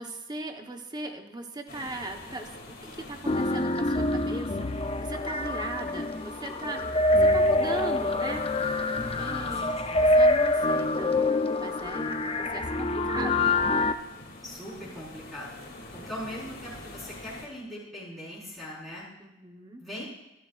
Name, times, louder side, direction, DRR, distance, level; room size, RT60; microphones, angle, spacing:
voice 1, 0.0-8.5 9.1-9.7 10.0-11.2 11.6-13.6 16.0-16.1 19.2-19.8, right 2 dB, 20° right, 5 dB, 1.1 m, -38 dB
sound 1, 1.7-17.5, left 2 dB, 50° left, 2.7 m, -47 dB
sound 2, 3.3-13.9, left 2 dB, 30° left, 0.6 m, -25 dB
voice 2, 9.1-10.3 14.4-15.5 15.9-19.0 19.8-20.0, left 1 dB, ahead, -7 dB, 4.7 m, -41 dB
25.0 x 11.5 x 2.5 m, 0.95 s
head